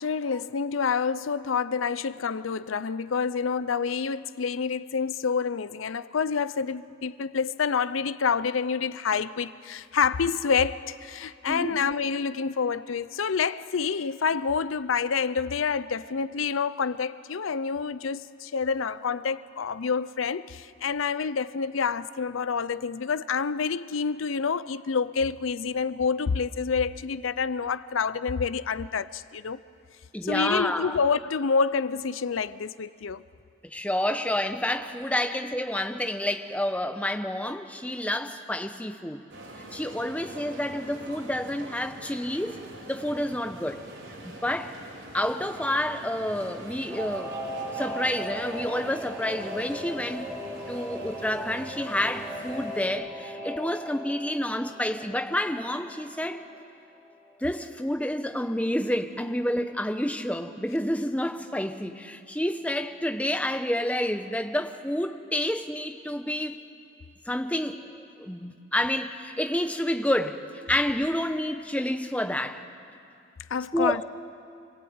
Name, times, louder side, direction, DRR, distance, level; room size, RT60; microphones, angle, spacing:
voice 1, 0.0-29.6 30.2-33.2 34.1-34.2 73.5-74.0, left 5 dB, 90° left, 0.6 m, -28 dB
voice 2, 11.5-11.9 30.1-31.0 33.6-39.2 39.7-42.6 42.9-43.8 44.2-44.8 45.1-47.4 47.7-50.4 50.7-56.4 57.4-66.6 67.3-70.4 70.7-72.6 73.7-74.0, left 1 dB, 5° left, 0.9 m, -29 dB
sound 1, 39.3-52.9, right 1 dB, 75° right, 3.9 m, -44 dB
Singing / Musical instrument, 46.9-56.9 57.3-57.4, equal, 10° right, 3.7 m, -38 dB
27.0 x 20.0 x 8.8 m
head